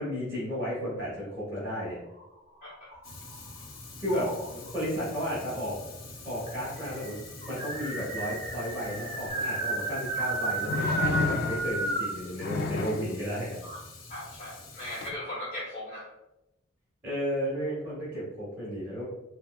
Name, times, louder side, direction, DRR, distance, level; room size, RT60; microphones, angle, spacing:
voice 1, 0.0-2.0 4.0-5.8 6.2-13.6 17.0-19.1, equal, 10° right, -9 dB, 1.2 m, -33 dB
sound 1, 2.1-3.5 4.1-4.7 5.7-5.8 6.0-6.1 6.5-12.2, right 2 dB, 35° right, 0.6 m, -33 dB
Fire, 3.0-15.1, left 3 dB, 85° left, 0.7 m, -46 dB
sound 2, 9.3-9.4 10.6-11.9 12.4-13.1 15.0-15.1, left 3 dB, 55° left, 0.3 m, -30 dB
voice 2, 14.1-16.1, left 1 dB, 35° left, -8 dB, 1.0 m, -38 dB
4.7 x 2.1 x 2.3 m, 0.94 s
head